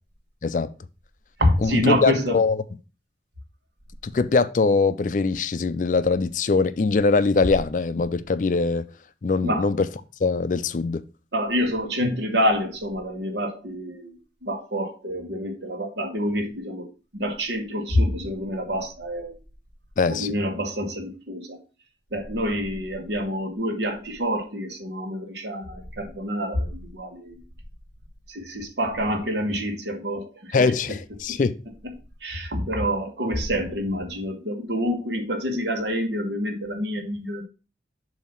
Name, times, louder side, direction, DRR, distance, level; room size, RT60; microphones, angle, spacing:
voice 1, 0.4-0.7 1.6-2.6 4.0-8.9 9.2-9.9 10.2-11.0 20.0-20.3 30.5-31.6, left 4 dB, 45° left, 0.4 m, -22 dB
voice 2, 1.4-2.4 9.4-9.7 11.3-16.9 17.1-19.3 20.1-21.6 22.1-27.4 28.3-30.5 31.3-31.4 32.2-37.4, equal, 75° right, 1.4 m, -27 dB
7.1 x 2.8 x 5.6 m
head